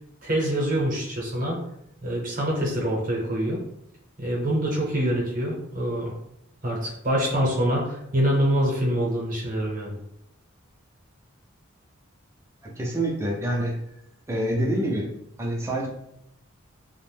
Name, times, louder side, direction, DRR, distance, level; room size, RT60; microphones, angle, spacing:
voice 1, 0.2-1.6 2.0-3.6 4.2-6.1 6.6-9.9, equal, 40° right, -3 dB, 0.7 m, -25 dB
voice 2, 12.6-13.7 14.3-15.1 15.4-15.9, right 1 dB, 15° right, -2 dB, 0.4 m, -26 dB
2.5 x 2.1 x 3.2 m, 0.78 s
head